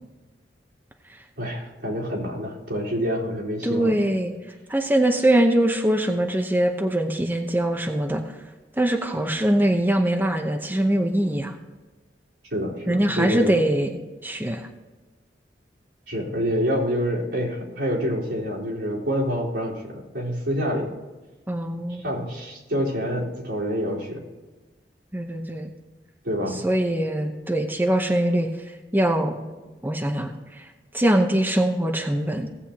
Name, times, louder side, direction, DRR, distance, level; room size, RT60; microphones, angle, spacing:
voice 1, 1.4-4.0 12.5-13.6 16.1-20.9 22.0-24.2 26.2-26.6, equal, 80° right, -6 dB, 3.7 m, -27 dB
voice 2, 3.6-4.3 4.7-8.3 8.8-11.5 12.9-13.9 14.2-14.7 21.5-22.1 25.1-25.7 26.6-28.5 28.9-29.4 29.8-30.7 30.9-32.5, right 1 dB, 10° right, 3 dB, 0.8 m, -22 dB
17.0 x 7.8 x 2.9 m, 1.2 s
head